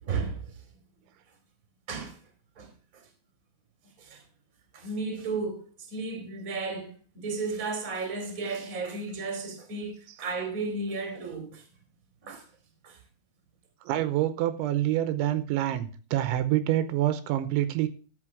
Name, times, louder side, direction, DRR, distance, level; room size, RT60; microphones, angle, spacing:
voice 1, 0.1-0.5 1.9-2.2 2.6-3.0 4.0-4.2 4.7-11.6 12.2-12.4 12.8-13.0, right 4 dB, 25° right, 2.1 m, -34 dB
voice 2, 13.9-17.9, right 13 dB, 85° right, 3.1 m, -26 dB
12.0 x 5.5 x 6.1 m
omnidirectional pair, 5.4 m